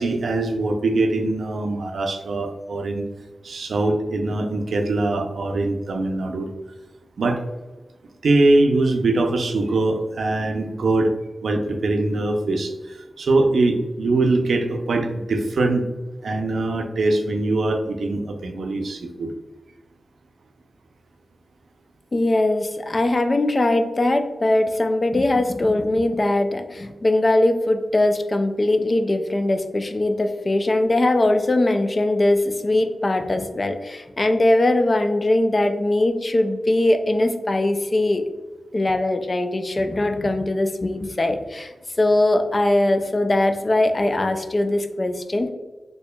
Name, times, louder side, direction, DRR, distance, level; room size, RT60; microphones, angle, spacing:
voice 1, 0.0-3.0 3.4-6.5 7.2-7.4 8.2-11.1 11.4-15.8 16.2-19.3, right 2 dB, 85° right, 4 dB, 0.5 m, -22 dB
voice 2, 22.1-38.2 38.7-45.5, left 1 dB, 30° left, 7 dB, 0.3 m, -21 dB
4.3 x 2.8 x 2.2 m, 1.2 s
wide cardioid pair, 155°, 0 cm